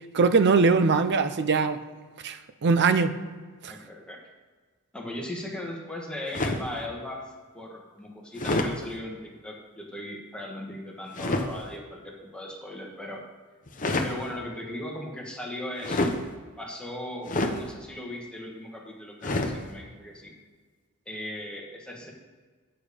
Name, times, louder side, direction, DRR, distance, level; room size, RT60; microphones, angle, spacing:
voice 1, 0.1-1.8 2.2-3.2 3.6-3.8, right 4 dB, 50° right, 12 dB, 0.5 m, -22 dB
voice 2, 3.7-4.2 4.9-7.2 7.5-13.2 14.0-16.1 16.6-20.3 21.0-22.1, left 1 dB, 5° left, -2 dB, 1.3 m, -38 dB
sound 1, 6.3-6.7 8.3-8.7 11.1-11.5 13.7-14.1 15.8-16.2 17.2-17.6 19.2-19.6, left 2 dB, 35° left, 0.8 m, -27 dB
9.1 x 6.7 x 5.0 m, 1.4 s
head